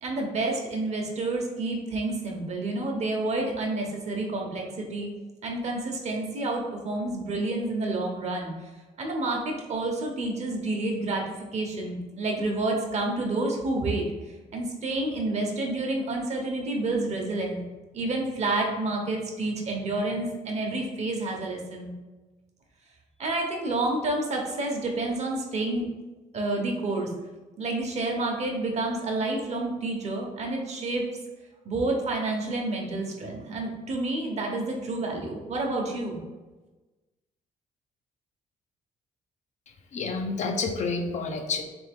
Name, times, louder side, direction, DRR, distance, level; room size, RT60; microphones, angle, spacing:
voice 1, 0.0-5.1 5.4-8.5 9.0-11.2 11.5-14.1 14.5-17.6 17.9-21.9 23.2-25.9 26.3-27.1 27.6-31.0 31.6-36.2, right 2 dB, 50° right, 1 dB, 0.9 m, -29 dB
voice 2, 39.9-41.6, left 4 dB, 50° left, 4 dB, 0.5 m, -29 dB
3.5 x 3.5 x 3.5 m, 1.2 s
cardioid pair, 105°, 15 cm